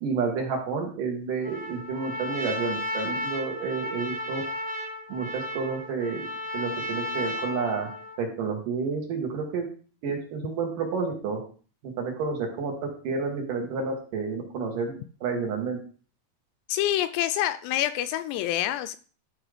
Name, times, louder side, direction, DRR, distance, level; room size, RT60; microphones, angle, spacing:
voice 1, 0.0-4.4 5.1-6.3 6.5-7.9 8.2-9.7 10.0-11.4 11.8-12.7 13.0-14.9 15.2-15.8, right 5 dB, 60° right, 1 dB, 2.7 m, -30 dB
Trumpet, 1.4-8.2, left 1 dB, 5° right, 1.2 m, -34 dB
voice 2, 16.7-19.0, left 13 dB, 85° left, 11 dB, 2.5 m, -27 dB
12.0 x 4.4 x 5.0 m, 0.40 s
omnidirectional pair, 5.0 m